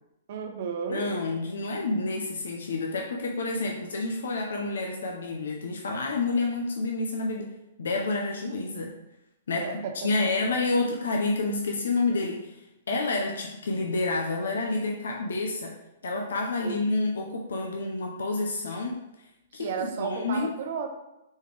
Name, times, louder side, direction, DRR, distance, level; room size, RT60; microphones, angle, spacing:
voice 1, 0.3-1.1 9.5-10.3 16.6-16.9 19.6-20.9, right 7 dB, 50° right, 5 dB, 0.7 m, -33 dB
voice 2, 0.9-7.5 7.8-8.9 9.5-12.6 12.9-15.7 16.0-19.0 19.5-20.5, left 3 dB, 90° left, 1 dB, 0.7 m, -29 dB
4.3 x 3.4 x 3.3 m, 0.89 s
hypercardioid pair, 155°, 0 cm